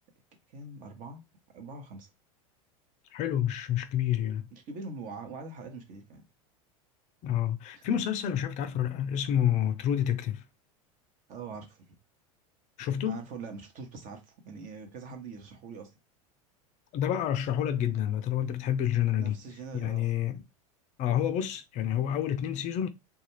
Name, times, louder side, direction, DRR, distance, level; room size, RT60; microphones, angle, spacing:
voice 1, 0.5-1.2 1.5-2.1 4.5-6.2 7.7-7.9 11.3-11.9 13.1-15.9 19.1-20.1, right 4 dB, 45° right, 0.9 m, -43 dB
voice 2, 3.1-4.4 7.2-10.4 12.8-13.2 16.9-19.4 19.7-20.4 21.0-22.9, left 10 dB, 40° left, 0.4 m, -28 dB
2.4 x 2.2 x 3.0 m
hypercardioid pair, 90°, 18 cm